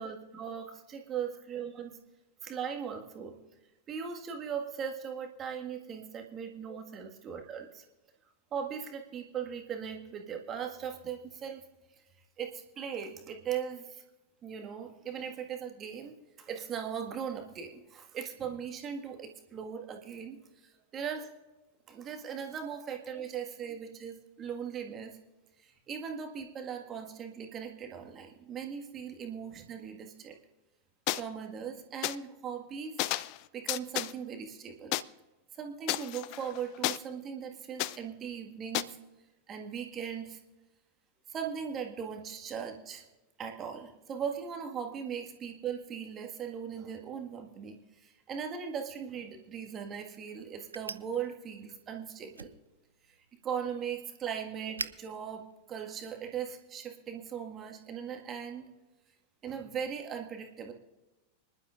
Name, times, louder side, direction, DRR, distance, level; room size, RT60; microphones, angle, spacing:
voice 1, 0.0-2.0 2.4-3.4 3.9-7.9 8.5-11.6 12.4-14.0 14.4-20.4 20.9-21.3 21.9-25.2 25.6-30.4 31.1-33.0 33.5-35.0 35.5-39.0 39.5-40.4 41.3-43.0 43.4-52.5 53.4-58.7 59.4-60.7, right 7 dB, 25° right, 3 dB, 1.8 m, -39 dB
sound 1, 31.1-31.2 32.0-32.2 33.0-33.4 33.7-34.1 34.9-35.0 35.9-37.0 37.8-38.0 38.7-38.8, left 18 dB, 45° left, 0.4 m, -31 dB
sound 2, 49.4-56.5, right 4 dB, 80° right, 0.4 m, -48 dB
25.5 x 11.5 x 2.5 m, 1.1 s
figure-of-eight pair, 90°, 0 cm